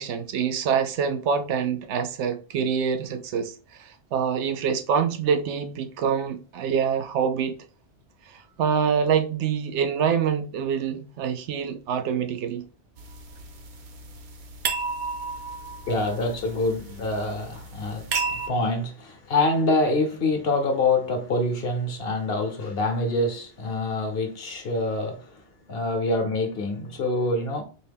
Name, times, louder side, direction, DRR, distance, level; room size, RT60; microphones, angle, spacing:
voice 1, 0.0-7.5 8.3-12.6, right 7 dB, 90° right, 0.9 m, -26 dB
sound 1, 13.0-18.5, right 4 dB, 55° right, 0.7 m, -33 dB
voice 2, 15.9-25.4 25.7-27.6, left 2 dB, 60° left, 1.0 m, -26 dB
4.2 x 2.2 x 3.4 m
omnidirectional pair, 1.1 m